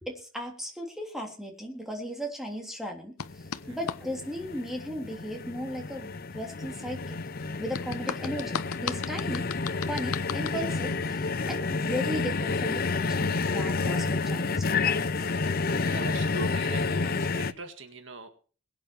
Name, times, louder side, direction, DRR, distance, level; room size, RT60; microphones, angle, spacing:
voice 1, 0.0-7.2 7.6-9.5 9.9-15.2, equal, ahead, 1 dB, 3.2 m, -36 dB
sound 1, 3.2-4.0 7.7-10.6, left 6 dB, 90° left, 0.9 m, -35 dB
sound 2, 3.2-17.5, left 4 dB, 45° left, 0.7 m, -30 dB
voice 2, 15.9-18.3, right 3 dB, 60° right, 7 dB, 1.9 m, -41 dB
22.0 x 9.0 x 4.6 m, 0.40 s
head